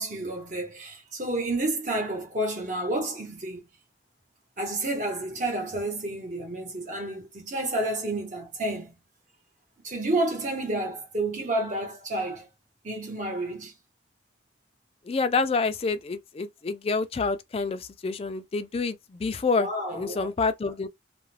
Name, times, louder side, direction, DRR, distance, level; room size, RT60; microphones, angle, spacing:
voice 1, 0.0-3.6 4.6-9.0 9.8-12.5 12.8-13.7 19.6-20.3, right 1 dB, 40° right, 1.0 m, -30 dB
voice 2, 15.1-20.9, left 4 dB, 30° left, 0.3 m, -28 dB
2.3 x 2.1 x 3.1 m
head